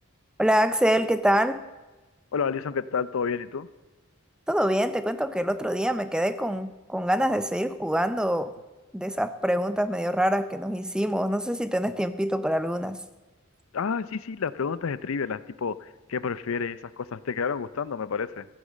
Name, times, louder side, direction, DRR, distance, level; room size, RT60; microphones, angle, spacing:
voice 1, 0.4-1.6 4.5-8.5 8.9-13.0, equal, 5° right, 12 dB, 0.5 m, -25 dB
voice 2, 2.3-3.7 13.7-18.5, left 6 dB, 75° left, 17 dB, 0.5 m, -30 dB
14.5 x 9.6 x 6.4 m, 1.2 s
head